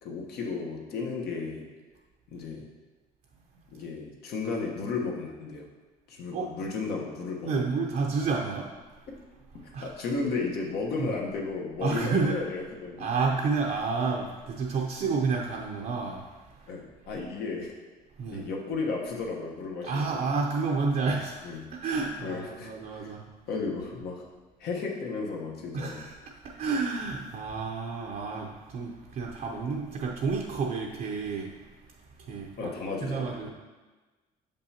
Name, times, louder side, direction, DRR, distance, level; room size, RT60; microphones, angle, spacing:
voice 1, 0.0-1.7 2.3-2.7 3.7-5.7 6.1-7.7 9.1-9.3 9.8-13.0 16.7-17.7 18.3-20.3 21.4-21.7 22.2-23.1 23.5-24.2 24.6-26.0 32.6-33.5, left 4 dB, 70° left, -1 dB, 1.1 m, -34 dB
voice 2, 7.4-8.7 9.7-9.9 11.0-11.1 11.8-12.4 13.0-16.8 18.2-18.4 19.8-21.4 21.7-23.2 25.7-31.7 32.2-32.7 33.0-33.5, right 4 dB, 55° right, -1 dB, 0.7 m, -30 dB
6.6 x 5.3 x 2.8 m, 1.3 s
cardioid pair, 110°, 17 cm